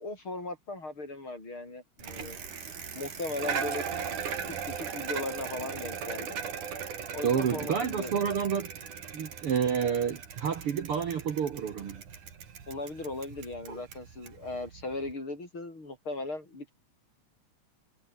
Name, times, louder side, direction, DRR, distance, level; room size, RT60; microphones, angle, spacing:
voice 1, 0.0-2.4 2.9-3.8 4.8-6.4 7.1-8.3 12.7-16.7, left 2 dB, 40° left, 8.1 m, -38 dB
Bicycle, 2.0-15.1, right 7 dB, 75° right, 4.6 m, -38 dB
voice 2, 7.2-8.7 9.1-12.0 13.7-13.8, right 7 dB, 50° right, 2.2 m, -29 dB
omnidirectional pair, 3.6 m